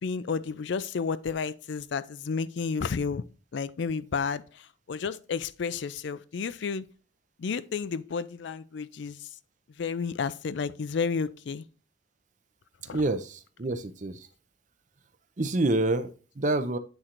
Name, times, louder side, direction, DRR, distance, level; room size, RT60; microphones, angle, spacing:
voice 1, 0.0-3.2 3.5-6.9 7.4-9.3 9.8-11.6 12.9-13.0, left 5 dB, 60° left, 0.4 m, -31 dB
voice 2, 12.9-14.3 15.4-16.8, right 2 dB, 40° right, 0.6 m, -27 dB
8.1 x 3.8 x 4.4 m
head